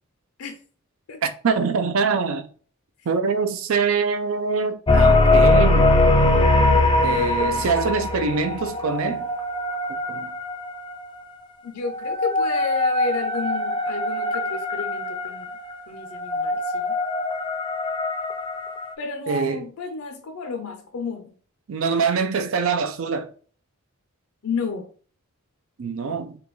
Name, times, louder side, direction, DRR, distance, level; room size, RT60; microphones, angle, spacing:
voice 1, 1.2-2.5 3.1-5.9 7.0-9.2 10.1-10.3 19.3-19.7 21.7-23.3 25.8-26.4, right 5 dB, 65° right, 0.4 m, -24 dB
sound 1, 4.9-11.1 11.9-18.9, left 2 dB, 20° left, 0.4 m, -21 dB
voice 2, 11.6-15.5 15.9-17.0 19.0-21.3 24.4-24.9, left 4 dB, 75° left, 0.5 m, -31 dB
5.0 x 2.3 x 3.0 m
head